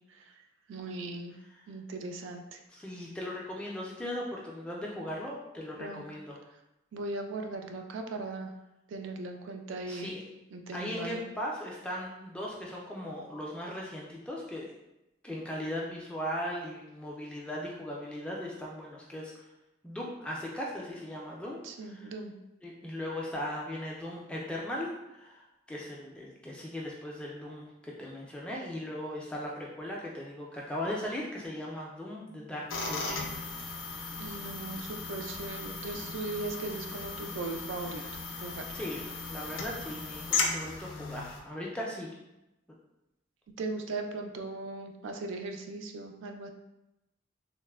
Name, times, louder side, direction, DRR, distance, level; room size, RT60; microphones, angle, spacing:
voice 1, 0.7-1.3 1.7-2.6 5.8-6.0 6.9-8.5 8.9-10.2 10.5-11.2 21.6-22.3 34.2-38.0 38.4-38.7 43.6-46.5, right 3 dB, 80° right, 5 dB, 0.3 m, -38 dB
voice 2, 2.7-6.4 9.9-10.2 10.7-14.7 15.2-19.3 19.8-22.1 22.6-33.5 38.7-42.1, left 1 dB, 5° left, -4 dB, 0.3 m, -38 dB
sound 1, 32.7-41.4, left 4 dB, 85° left, 0.4 m, -36 dB
3.1 x 2.0 x 2.2 m, 0.93 s
head